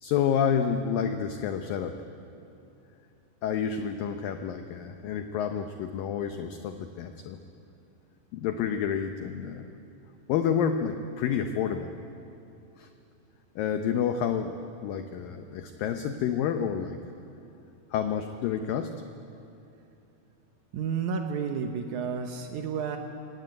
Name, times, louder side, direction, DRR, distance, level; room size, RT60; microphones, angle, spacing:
voice 1, 0.0-2.0 3.4-7.4 8.3-9.7 10.3-11.9 12.8-12.9 13.6-14.6 14.8-17.0 17.9-18.9, left 8 dB, 80° left, 7 dB, 2.0 m, -29 dB
voice 2, 20.7-23.0, right 6 dB, 90° right, 4 dB, 1.7 m, -31 dB
22.0 x 17.5 x 9.3 m, 2.8 s
omnidirectional pair, 5.0 m